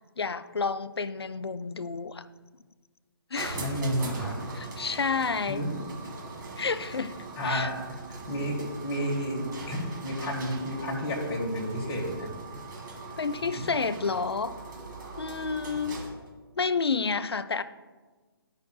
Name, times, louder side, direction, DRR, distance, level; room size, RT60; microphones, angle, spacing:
voice 1, 0.2-2.3 3.3-3.7 4.5-5.7 6.6-7.1 7.4-7.7 13.2-14.6 15.2-16.0 16.6-17.6, left 5 dB, 85° left, 13 dB, 0.4 m, -30 dB
sound 1, 3.3-16.3, right 3 dB, 50° right, 1.7 m, -41 dB
voice 2, 3.5-4.4 5.5-5.7 7.4-7.7 8.3-8.6 8.8-12.3 13.6-13.7, equal, 25° left, -2 dB, 1.7 m, -31 dB
12.5 x 5.6 x 2.3 m, 1.4 s
figure-of-eight pair, 135°, 13 cm